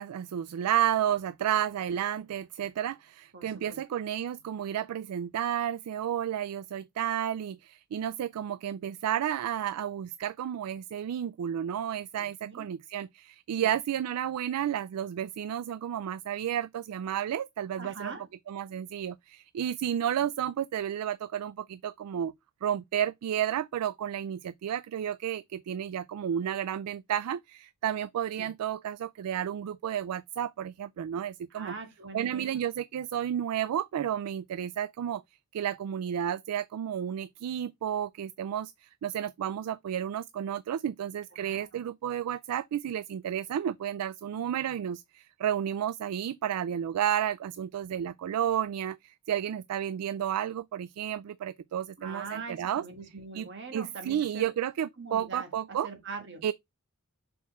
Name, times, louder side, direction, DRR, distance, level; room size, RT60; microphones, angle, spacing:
voice 1, 0.0-18.1 18.5-22.3 22.6-31.7 32.1-35.2 35.5-52.8 53.3-55.9 56.4-56.5, right 10 dB, 85° right, 0.3 m, -32 dB
voice 2, 3.3-3.8 12.2-12.7 13.6-13.7 17.8-18.3 28.4-28.5 31.5-32.6 41.4-41.8 52.0-54.5 55.0-56.4, right 4 dB, 50° right, 1.5 m, -43 dB
6.3 x 4.2 x 3.5 m
head